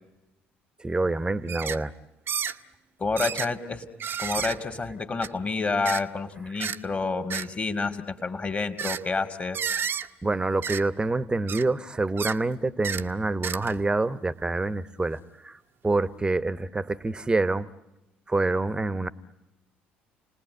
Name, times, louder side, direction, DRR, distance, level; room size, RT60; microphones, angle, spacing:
voice 1, 0.8-1.9 10.2-15.6 15.8-17.7 18.3-19.1, right 2 dB, 15° right, 15 dB, 1.1 m, -26 dB
sound 1, 1.5-1.8 2.3-2.6 3.2-3.5 4.0-4.6 5.2-5.3 5.8-6.0 6.6-6.8 7.3-7.5 8.8-9.0 9.5-10.1 10.6-10.8 11.5-11.6 12.2-12.4 12.8-13.0 13.4-13.8 14.4-14.5, right 7 dB, 40° right, 0.9 m, -31 dB
voice 2, 3.0-3.9 4.2-9.7, left 4 dB, 25° left, 7 dB, 2.2 m, -29 dB
29.5 x 20.0 x 9.5 m, 0.98 s
figure-of-eight pair, 55°, 5 cm